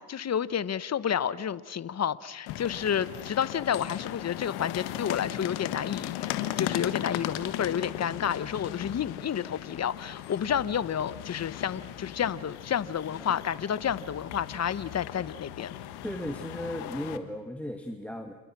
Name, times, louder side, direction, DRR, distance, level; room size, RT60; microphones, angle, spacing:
voice 1, 0.0-15.7, left 8 dB, 40° left, 16 dB, 1.2 m, -30 dB
sound 1, 2.5-17.2, left 13 dB, 85° left, 1.6 m, -37 dB
voice 2, 16.0-18.3, left 1 dB, 5° left, 5 dB, 2.4 m, -35 dB
29.5 x 29.0 x 6.2 m, 1.2 s
supercardioid pair, 70°, 38 cm